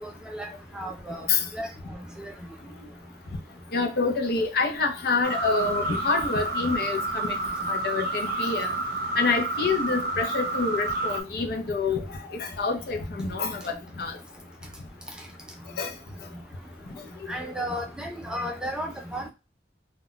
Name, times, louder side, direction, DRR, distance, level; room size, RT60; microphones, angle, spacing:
voice 1, 0.0-0.5 0.7-1.3 1.5-1.7 2.2-2.3 17.3-19.2, equal, 5° right, 0.3 m, -33 dB
voice 2, 3.7-7.4 7.7-8.7 9.2-14.2 15.8-15.9, left 4 dB, 60° left, 0.5 m, -27 dB
sound 1, 5.2-11.2, right 2 dB, 55° right, 0.7 m, -29 dB
2.2 x 2.1 x 3.8 m
head